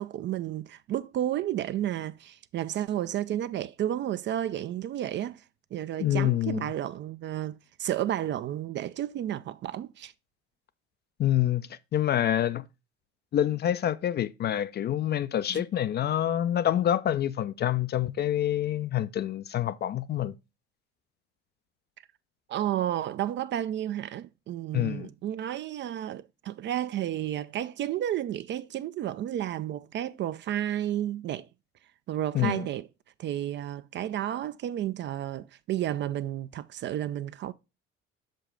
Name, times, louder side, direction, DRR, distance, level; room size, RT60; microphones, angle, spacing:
voice 1, 0.0-5.4 5.7-10.1 15.5-15.6 22.5-31.5 32.1-32.9 33.2-37.5, right 12 dB, 35° right, 0.4 m, -32 dB
voice 2, 6.0-6.6 11.2-12.6 13.3-20.3 24.7-25.1 32.3-32.7, left 11 dB, 30° left, 0.4 m, -27 dB
6.3 x 5.1 x 3.7 m
figure-of-eight pair, 60°, 33 cm